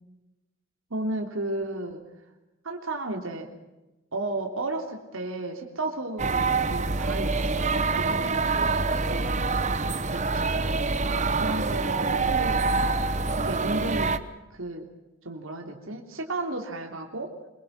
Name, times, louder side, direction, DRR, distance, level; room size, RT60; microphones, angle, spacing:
voice 1, 0.9-2.0 2.6-3.5 4.1-8.6 9.0-10.8 11.4-13.0 13.4-14.1 14.5-14.9 15.2-17.3, right 2 dB, 85° right, 3 dB, 3.3 m, -33 dB
sound 1, 6.2-14.2, right 3 dB, 35° right, 1.0 m, -26 dB
25.5 x 23.0 x 6.0 m, 1.0 s
head